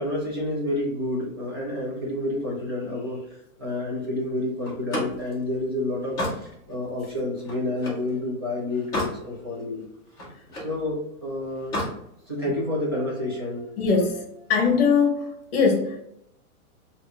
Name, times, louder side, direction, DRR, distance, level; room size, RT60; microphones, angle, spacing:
voice 1, 0.0-3.3 3.6-9.8 10.5-11.8 12.3-13.7, left 1 dB, 20° right, 0.4 m, -29 dB
Slam, 4.6-8.1 8.5-9.2 9.6-10.8 11.5-12.0, left 1 dB, 10° left, 0.7 m, -32 dB
voice 2, 13.8-16.0, left 5 dB, 40° left, 1.1 m, -22 dB
5.3 x 2.6 x 2.8 m
hypercardioid pair, 170°, 44 cm